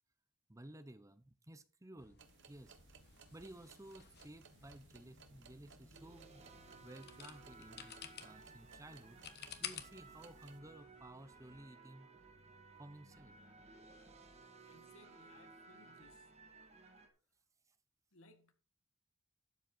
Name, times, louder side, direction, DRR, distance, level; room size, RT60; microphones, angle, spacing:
voice 1, 0.5-2.2 2.5-2.8 3.3-6.4 6.8-8.0 8.2-9.2 9.6-12.1 12.8-13.3, right 1 dB, 15° right, 0.8 m, -55 dB
sound 1, 2.0-11.6, left 9 dB, 50° left, 1.3 m, -54 dB
sound 2, 2.2-10.6, right 6 dB, 60° right, 1.2 m, -63 dB
sound 3, 4.1-4.7 5.5-17.1, right 3 dB, 30° right, 1.6 m, -59 dB
voice 2, 14.7-16.3 18.1-18.5, left 2 dB, 80° left, 1.7 m, -64 dB
12.0 x 7.8 x 4.4 m
head